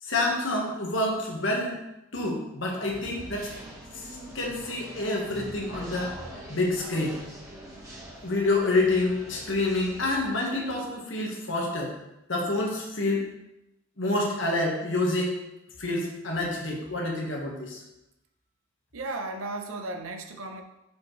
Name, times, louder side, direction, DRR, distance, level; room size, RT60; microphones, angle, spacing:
voice 1, 0.0-1.8 2.1-3.5 3.9-4.1 4.3-6.1 6.5-7.2 8.2-11.9 12.3-13.3 14.0-15.4 15.8-17.8, left 2 dB, 65° left, -1 dB, 1.5 m, -27 dB
sound 1, 2.9-10.3, right 1 dB, 15° right, 1.2 m, -43 dB
voice 2, 18.9-20.6, right 2 dB, 85° right, 5 dB, 0.8 m, -35 dB
6.8 x 5.3 x 3.2 m, 0.90 s
head